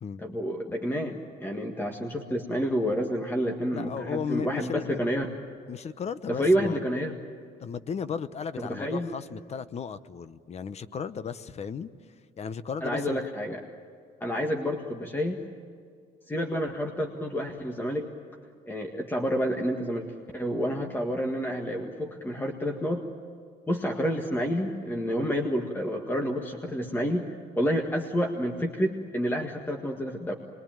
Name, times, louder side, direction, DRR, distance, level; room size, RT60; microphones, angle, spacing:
voice 1, 0.2-5.3 6.3-7.2 8.6-9.1 12.8-13.6 14.2-15.4 16.3-18.1 18.7-20.1 20.3-23.0 23.7-27.3 27.6-30.3, equal, 10° left, 2 dB, 1.8 m, -29 dB
voice 2, 3.7-5.0 5.7-6.8 7.6-11.9 12.4-13.3, left 6 dB, 40° left, 14 dB, 0.9 m, -35 dB
26.0 x 22.0 x 9.1 m, 2.1 s
cardioid pair, 110°, 17 cm